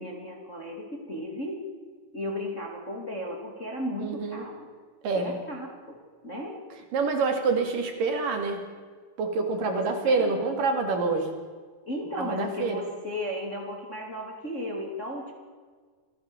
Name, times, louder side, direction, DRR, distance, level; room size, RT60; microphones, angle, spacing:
voice 1, 0.0-1.7 2.1-4.7 5.1-6.6 9.7-10.4 11.9-15.3, left 1 dB, 20° left, 1 dB, 2.6 m, -35 dB
voice 2, 4.0-4.5 5.0-5.4 6.9-8.7 9.2-11.4 12.2-12.8, right 4 dB, 65° right, 5 dB, 3.9 m, -27 dB
27.0 x 16.5 x 7.2 m, 1.5 s
omnidirectional pair, 4.3 m